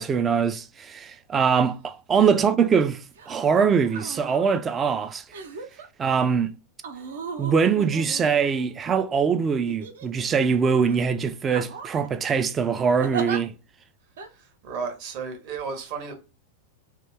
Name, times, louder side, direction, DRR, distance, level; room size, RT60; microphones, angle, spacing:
voice 1, 0.0-5.2 6.0-6.5 7.4-13.5, right 6 dB, 20° right, 0.4 m, -23 dB
voice 2, 2.1-2.5 14.3-16.1, right 5 dB, 45° right, 1.1 m, -34 dB
sound 1, 3.2-3.4 3.8-4.5 5.3-5.9 6.8-8.9 9.7-10.4 10.8-11.0 11.5-12.1 13.0-13.4 14.2-14.3, right 5 dB, 60° right, 0.6 m, -36 dB
2.9 x 2.7 x 3.4 m
figure-of-eight pair, 90°, 0 cm